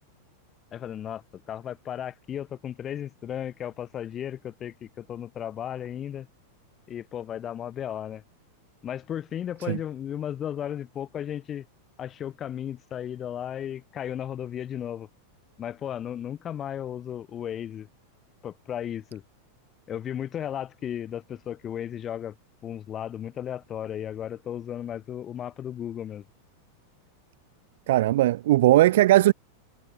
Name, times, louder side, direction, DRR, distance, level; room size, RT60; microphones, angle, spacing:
voice 1, 0.7-6.3 6.9-8.2 8.8-11.6 12.0-15.1 15.6-17.9 18.4-19.2 19.9-22.3 22.6-26.2, left 10 dB, 25° left, 1.7 m, -35 dB
voice 2, 27.9-29.3, right 15 dB, 55° right, 1.1 m, -18 dB
figure-of-eight pair, 90°, 0 cm